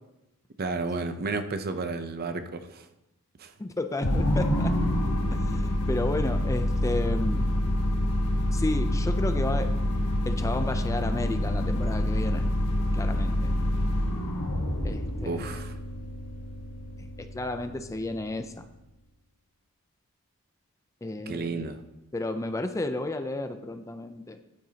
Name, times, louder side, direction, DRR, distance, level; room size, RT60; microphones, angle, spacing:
voice 1, 0.6-2.8 3.4-3.5 15.2-15.7 21.3-21.8, right 3 dB, 45° right, 9 dB, 0.6 m, -32 dB
voice 2, 3.6-4.7 5.3-7.5 8.5-9.7 10.3-12.5 12.9-13.3 14.8-15.5 17.2-18.6 21.0-21.7 22.1-24.4, left 2 dB, 15° left, 8 dB, 0.4 m, -32 dB
sound 1, 4.0-18.5, left 1 dB, 85° left, 1.2 m, -27 dB
10.5 x 8.8 x 2.8 m, 0.93 s
head